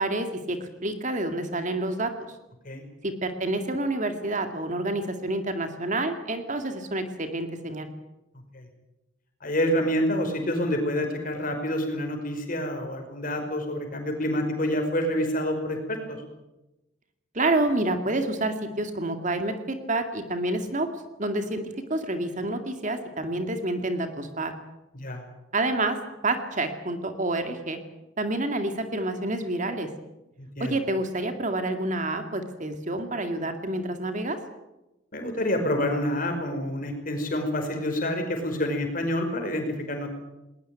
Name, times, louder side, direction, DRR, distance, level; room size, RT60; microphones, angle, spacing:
voice 1, 0.0-2.1 3.0-7.9 17.3-20.9 21.2-21.6 21.9-24.5 25.5-26.0 26.2-27.8 28.2-29.9 30.6-34.4, right 2 dB, 40° right, 7 dB, 2.2 m, -28 dB
voice 2, 9.4-16.2 25.0-25.2 30.4-30.8 35.1-40.1, equal, 45° left, 5 dB, 5.4 m, -27 dB
20.0 x 20.0 x 9.1 m, 0.98 s
head